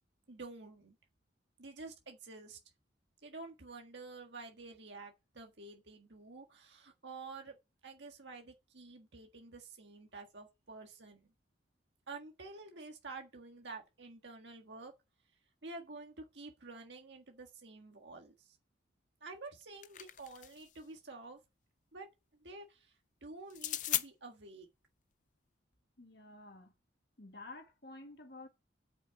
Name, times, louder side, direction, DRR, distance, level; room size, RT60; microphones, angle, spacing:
voice 1, 0.3-0.9 1.6-2.6 3.2-7.6 7.8-11.3 12.1-14.9 15.6-18.5 19.2-21.4 21.9-22.1 22.3-22.9 23.2-24.7, right 3 dB, 65° right, 1.7 m, -49 dB
sound 1, 19.5-20.8 23.5-24.1, left 13 dB, 40° left, 0.4 m, -37 dB
voice 2, 26.0-26.7 27.2-28.5, left 2 dB, 55° left, 1.8 m, -51 dB
9.0 x 5.6 x 7.1 m
head